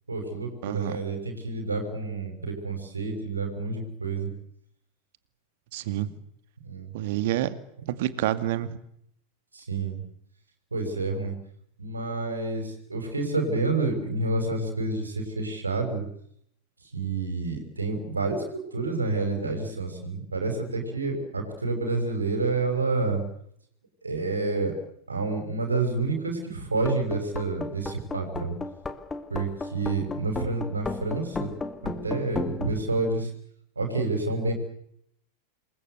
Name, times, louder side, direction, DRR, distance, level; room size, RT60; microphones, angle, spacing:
voice 1, 0.1-4.3 6.6-6.9 9.5-10.0 10.7-11.3 11.8-16.0 16.9-23.2 24.0-24.8 25.1-28.5 29.3-31.5 31.8-33.3 33.8-34.5, right 3 dB, 80° right, 5 dB, 6.4 m, -29 dB
voice 2, 0.6-1.0 5.7-6.1 6.9-7.5 7.9-8.8, right 13 dB, 50° right, 13 dB, 2.2 m, -28 dB
sound 1, 26.8-32.7, left 3 dB, 15° left, 2.2 m, -34 dB
28.0 x 21.5 x 8.1 m, 0.72 s
figure-of-eight pair, 90°, 0 cm